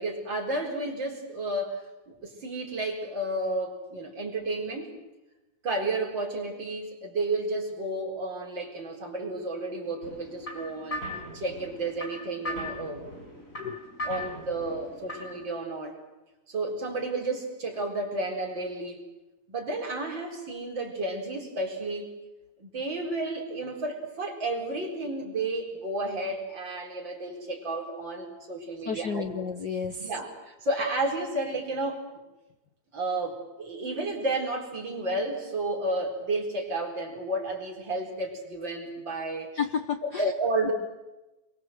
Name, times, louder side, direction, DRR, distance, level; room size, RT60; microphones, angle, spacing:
voice 1, 0.0-4.9 5.6-11.0 11.3-13.0 14.0-16.0 16.5-19.0 19.5-22.1 22.6-29.3 30.0-32.0 32.9-39.5 40.0-40.7, right 2 dB, 40° right, 1 dB, 4.8 m, -32 dB
sound 1, 10.0-15.5, left 1 dB, 25° left, 5.6 m, -39 dB
voice 2, 28.8-30.1 39.5-40.3 40.6-40.7, left 6 dB, 80° left, 7 dB, 0.9 m, -31 dB
27.5 x 23.0 x 7.8 m, 1.0 s
omnidirectional pair, 3.3 m